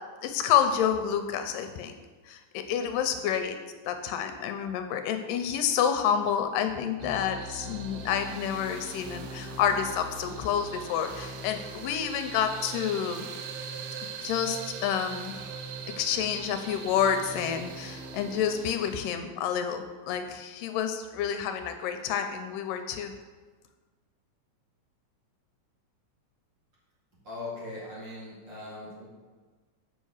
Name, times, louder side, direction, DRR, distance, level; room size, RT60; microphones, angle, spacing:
voice 1, 0.2-1.9 2.3-3.6 3.9-13.3 14.0-15.4 15.9-23.1, left 8 dB, 80° left, 7 dB, 2.2 m, -29 dB
sound 1, 7.0-19.0, right 4 dB, 75° right, 1.9 m, -40 dB
voice 2, 27.2-29.1, left 2 dB, 35° right, -7 dB, 2.5 m, -40 dB
7.7 x 5.5 x 6.3 m, 1.4 s
omnidirectional pair, 4.0 m